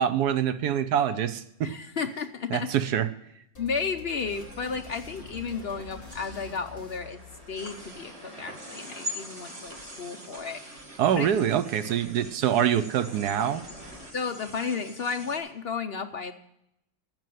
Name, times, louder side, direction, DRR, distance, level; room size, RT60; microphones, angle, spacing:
voice 1, 0.0-1.7 2.5-3.1 11.0-13.6, right 9 dB, 70° right, 12 dB, 1.1 m, -25 dB
voice 2, 1.6-2.7 3.6-7.2 7.5-10.6 11.1-11.3 14.1-16.3, left 5 dB, 65° left, 6 dB, 0.5 m, -33 dB
sound 1, 3.5-7.9, left 5 dB, 30° left, 2.3 m, -46 dB
sound 2, 4.1-14.1, equal, 20° right, 3.3 m, -51 dB
sound 3, 4.2-15.4, equal, 35° right, 2.2 m, -44 dB
12.0 x 7.8 x 9.2 m, 0.80 s
omnidirectional pair, 2.0 m